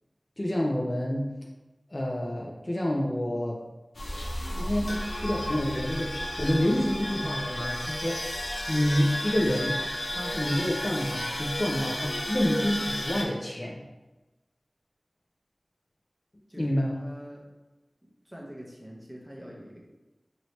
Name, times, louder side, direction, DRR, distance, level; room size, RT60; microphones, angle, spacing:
voice 1, 0.4-1.3 1.9-3.6 4.5-8.2 8.7-9.8 10.1-13.8 16.6-17.0, left 1 dB, 35° left, -2 dB, 0.4 m, -28 dB
sound 1, 3.9-13.2, left 1 dB, 80° left, 0.5 m, -33 dB
voice 2, 16.5-17.4 18.2-19.8, equal, 5° right, -2 dB, 0.8 m, -44 dB
3.1 x 2.8 x 3.1 m, 1.1 s
wide cardioid pair, 55°, 0 cm